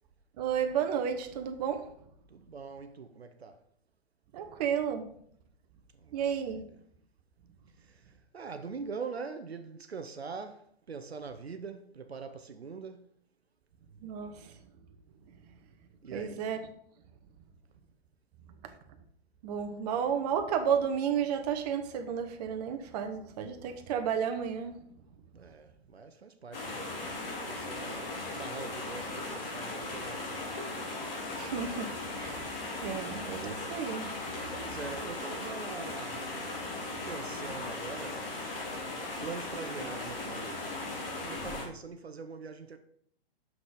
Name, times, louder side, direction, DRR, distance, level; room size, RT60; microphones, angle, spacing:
voice 1, 0.4-1.9 4.3-5.2 6.1-6.6 14.0-14.6 15.3-15.4 16.1-16.6 18.6-18.8 19.4-24.8 31.4-32.5 32.7-34.1, right 8 dB, 40° right, 1.0 m, -32 dB
voice 2, 2.3-3.7 5.9-6.8 7.7-13.1 16.0-16.5 25.3-26.9 27.2-30.6 33.4-33.5 34.6-36.6 37.0-38.3 39.2-40.8 41.2-42.8, right 5 dB, 80° right, 0.7 m, -43 dB
sound 1, 26.5-41.7, left 2 dB, 60° left, 3.0 m, -38 dB
6.5 x 5.9 x 5.0 m
figure-of-eight pair, 110°, 31 cm